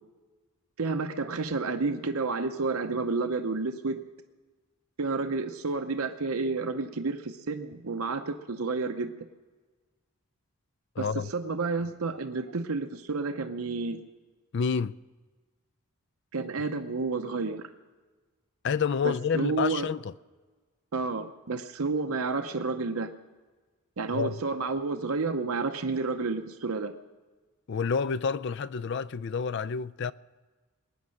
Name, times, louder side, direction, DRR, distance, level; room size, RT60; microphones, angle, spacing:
voice 1, 0.8-4.0 5.0-9.1 11.0-14.0 16.3-17.7 19.0-19.9 20.9-23.1 24.0-26.9, right 3 dB, 80° right, 0.8 m, -30 dB
voice 2, 11.0-11.3 14.5-14.9 18.6-20.1 24.1-24.3 27.7-30.1, left 6 dB, 55° left, 0.4 m, -29 dB
20.5 x 9.5 x 6.4 m
head